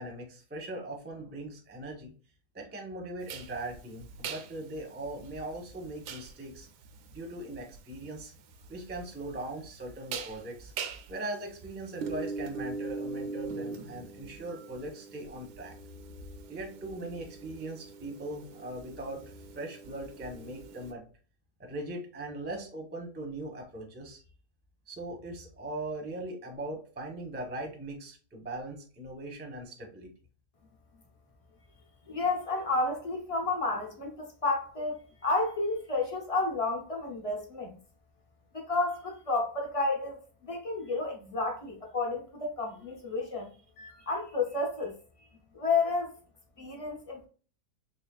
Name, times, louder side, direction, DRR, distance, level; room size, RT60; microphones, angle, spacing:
voice 1, 0.0-2.1 2.5-6.7 7.1-8.3 8.7-10.7 11.1-15.7 16.5-19.2 19.5-21.0 21.6-24.2 24.9-30.1, right 1 dB, 15° right, 0.4 m, -40 dB
sound 1, 3.3-20.9, right 4 dB, 80° right, 1.2 m, -42 dB
voice 2, 32.1-37.7 38.5-43.5 43.8-44.9 45.5-46.1 46.6-47.3, left 3 dB, 50° left, 0.4 m, -31 dB
4.2 x 3.2 x 2.3 m
omnidirectional pair, 1.8 m